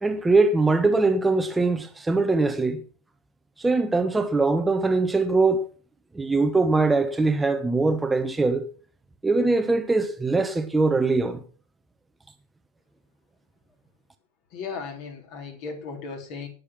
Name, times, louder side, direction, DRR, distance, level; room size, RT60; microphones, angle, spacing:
voice 1, 0.0-2.8 3.6-5.7 6.1-8.7 9.2-11.4, right 3 dB, 10° right, 1.1 m, -22 dB
voice 2, 14.5-16.5, left 5 dB, 45° left, 3.7 m, -36 dB
19.0 x 6.7 x 6.0 m
figure-of-eight pair, 90°, 0 cm